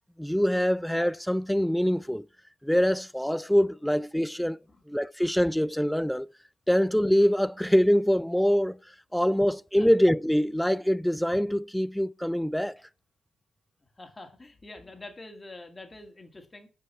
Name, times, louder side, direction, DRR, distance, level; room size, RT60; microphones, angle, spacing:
voice 1, 0.2-2.3 2.6-4.6 4.9-6.3 6.7-8.8 9.1-12.8, equal, ahead, 0.3 m, -24 dB
voice 2, 14.0-16.7, left 2 dB, 25° left, 2.3 m, -46 dB
9.2 x 5.3 x 5.6 m
cardioid pair, 90°, 0 cm